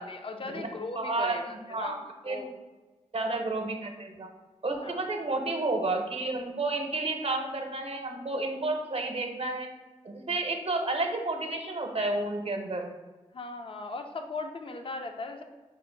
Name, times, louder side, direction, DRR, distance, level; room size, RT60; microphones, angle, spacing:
voice 1, 0.0-2.0 2.3-2.5 4.8-5.0 13.3-15.4, left 3 dB, 45° left, 5 dB, 0.6 m, -38 dB
voice 2, 1.0-2.5 3.1-4.3 4.6-9.7 10.0-12.9, right 2 dB, 50° right, 4 dB, 0.8 m, -31 dB
4.9 x 2.0 x 4.4 m, 1.3 s
cardioid pair, 45°, 13 cm